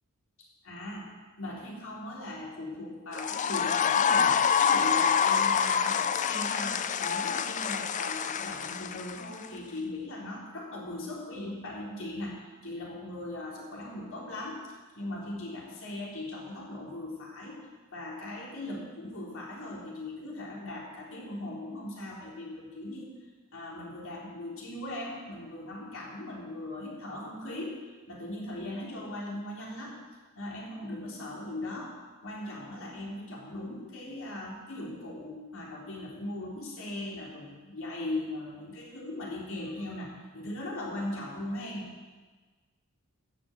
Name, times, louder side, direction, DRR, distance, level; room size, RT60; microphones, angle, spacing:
voice 1, 0.4-1.1 1.4-17.7 17.9-23.2 23.5-30.0 30.4-31.9 32.2-41.9, left 1 dB, 65° left, -3 dB, 3.7 m, -39 dB
sound 1, 3.1-9.5, left 7 dB, 35° left, 0.4 m, -26 dB
13.5 x 7.1 x 8.6 m, 1.4 s
head